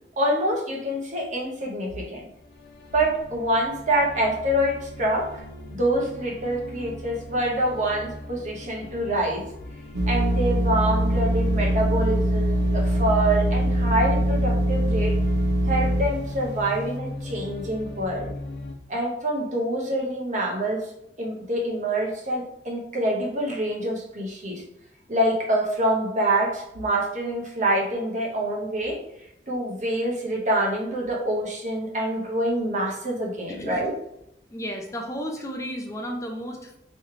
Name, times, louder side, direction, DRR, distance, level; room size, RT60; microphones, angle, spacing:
voice 1, 0.2-2.3 2.9-5.4 5.7-9.4 10.1-15.2 15.6-18.3 18.9-20.9 21.2-24.6 25.1-29.0 29.5-33.9, right 1 dB, 45° right, -1 dB, 1.0 m, -26 dB
sound 1, 2.2-18.7, left 2 dB, 60° left, 0.6 m, -39 dB
sound 2, 9.9-16.4, right 1 dB, 70° right, 0.6 m, -23 dB
voice 2, 33.5-33.8 34.5-36.8, equal, 15° left, 1 dB, 0.5 m, -33 dB
4.7 x 3.1 x 3.2 m, 0.81 s
head